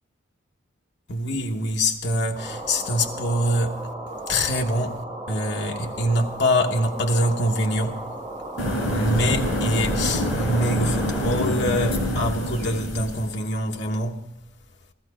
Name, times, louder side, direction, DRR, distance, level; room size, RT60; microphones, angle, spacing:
voice 1, 1.1-3.9 4.3-8.1 8.9-14.3, equal, 60° left, 1.1 m, -24 dB
sound 1, 2.3-11.3, right 1 dB, 30° right, 4.2 m, -35 dB
sound 2, 8.6-13.4, equal, 85° left, 3.4 m, -26 dB
15.0 x 15.0 x 4.9 m
head